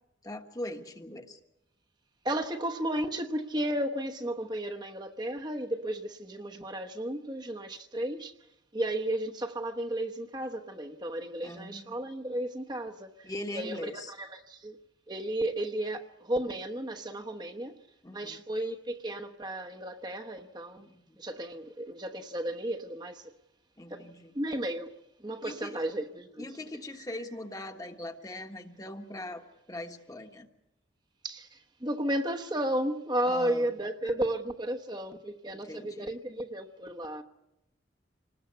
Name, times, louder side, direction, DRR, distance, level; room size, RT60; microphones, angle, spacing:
voice 1, 0.2-1.4 11.4-11.9 13.2-14.1 18.0-18.4 21.1-21.2 23.8-24.3 25.4-25.9 26.4-29.4 29.7-30.5 33.2-33.7 35.7-36.1, left 1 dB, 20° left, 1.4 m, -41 dB
voice 2, 2.2-8.3 8.7-14.8 15.1-17.7 18.1-20.9 21.2-23.3 23.9-24.1 24.3-24.9 25.2-26.5 31.2-37.2, right 1 dB, 25° right, 1.0 m, -33 dB
26.5 x 20.0 x 8.0 m
head